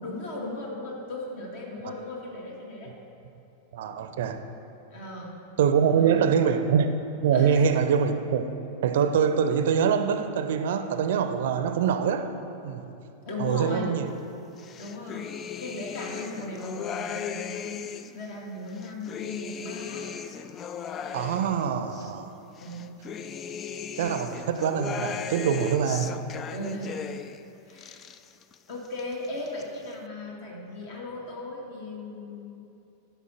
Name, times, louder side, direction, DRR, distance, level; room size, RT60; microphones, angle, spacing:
voice 1, 0.0-2.9 4.9-5.3 5.9-6.7 7.3-7.8 13.3-13.9 14.8-20.1 22.6-22.9 26.5-27.2 27.7-28.0 28.7-32.6, left 2 dB, 50° left, -2 dB, 2.1 m, -37 dB
voice 2, 3.7-4.4 5.6-6.9 7.2-8.5 8.8-12.3 12.6-12.9 13.4-14.1 21.1-22.3 24.0-26.1, right 7 dB, 55° right, 9 dB, 0.6 m, -24 dB
sound 1, 14.6-18.2 18.7-22.1 22.6-27.4 27.7-28.6 28.9-29.6, left 7 dB, 25° left, 0.4 m, -37 dB
12.0 x 5.3 x 6.5 m, 2.8 s
figure-of-eight pair, 90°, 0 cm